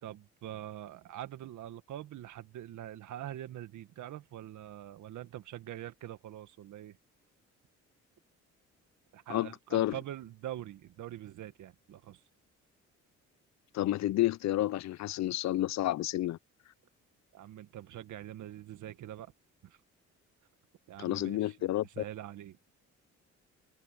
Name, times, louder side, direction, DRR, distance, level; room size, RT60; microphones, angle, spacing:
voice 1, 0.0-7.0 9.1-12.2 17.3-19.3 19.6-19.8 20.9-21.6 21.8-22.6, right 12 dB, 75° right, 1.8 m, -44 dB
voice 2, 9.3-10.0 13.7-16.4 21.0-21.9, left 14 dB, 65° left, 0.5 m, -30 dB
open air
cardioid pair, 90°, 30 cm